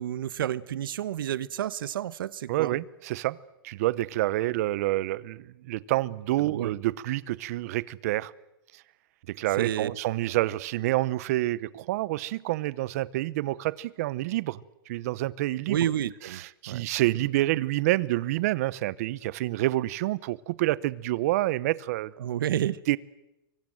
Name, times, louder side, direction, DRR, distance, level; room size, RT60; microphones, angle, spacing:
voice 1, 0.0-2.7 6.5-6.7 9.6-9.9 15.7-16.4 16.7-16.9 22.2-22.8, right 11 dB, 65° right, 1.1 m, -30 dB
voice 2, 2.5-3.4 3.6-8.3 9.3-15.9 16.2-22.1 22.9-23.0, right 17 dB, 40° right, 0.9 m, -28 dB
28.5 x 24.0 x 7.8 m
hypercardioid pair, 165°, 12 cm